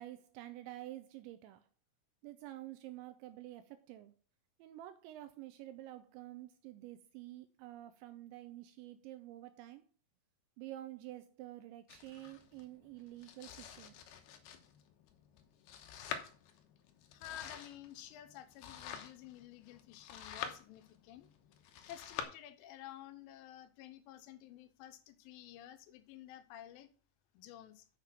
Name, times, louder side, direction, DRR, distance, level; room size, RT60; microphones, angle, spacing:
voice 1, 0.0-1.7 2.2-4.1 4.6-9.8 10.6-13.9, right 14 dB, 85° right, 2.8 m, -49 dB
Domestic sounds home sounds, 11.9-22.2, left 8 dB, 75° left, 2.5 m, -48 dB
voice 2, 17.1-21.3 21.9-26.9 27.4-27.9, left 12 dB, 90° left, 3.3 m, -52 dB
6.9 x 6.6 x 5.7 m
omnidirectional pair, 5.4 m